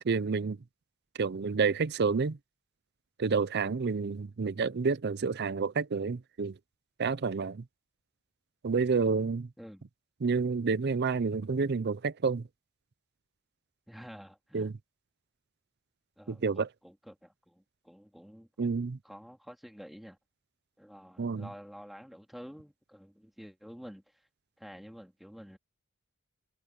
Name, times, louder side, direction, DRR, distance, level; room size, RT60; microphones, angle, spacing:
voice 1, 0.0-0.6 1.2-2.4 3.2-6.6 7.0-7.6 8.6-9.5 10.2-12.5 14.5-14.7 16.3-16.7 18.6-19.0 21.2-21.5, right 5 dB, 55° right, 0.5 m, -29 dB
voice 2, 13.9-14.7 16.2-18.7 19.0-20.2 20.8-24.0 24.6-25.6, equal, ahead, 3.4 m, -49 dB
head